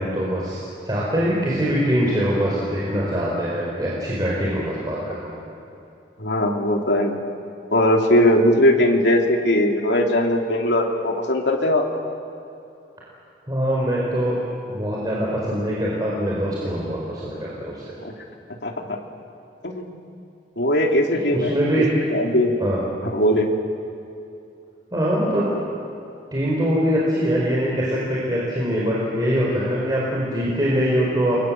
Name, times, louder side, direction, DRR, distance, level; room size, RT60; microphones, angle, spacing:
voice 1, 0.0-5.4 13.5-14.3 14.7-17.8 21.3-21.9 22.6-22.8 24.9-25.5 26.3-31.4, equal, 25° right, -5 dB, 4.8 m, -23 dB
voice 2, 6.2-7.2 7.7-11.8 18.0-18.1 18.6-19.0 19.6-20.0 20.6-21.8 22.1-22.5 23.1-23.5, left 1 dB, 90° left, 1 dB, 3.1 m, -20 dB
29.0 x 24.0 x 7.7 m, 2.7 s
head